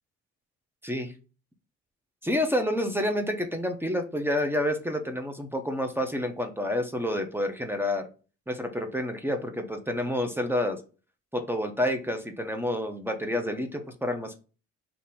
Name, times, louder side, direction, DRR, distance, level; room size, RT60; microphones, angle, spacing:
voice 1, 2.2-8.1 8.5-10.8 11.3-14.4, left 1 dB, 5° right, 6 dB, 0.9 m, -29 dB
3.7 x 2.9 x 4.2 m, 0.34 s
cardioid pair, 90°, 30 cm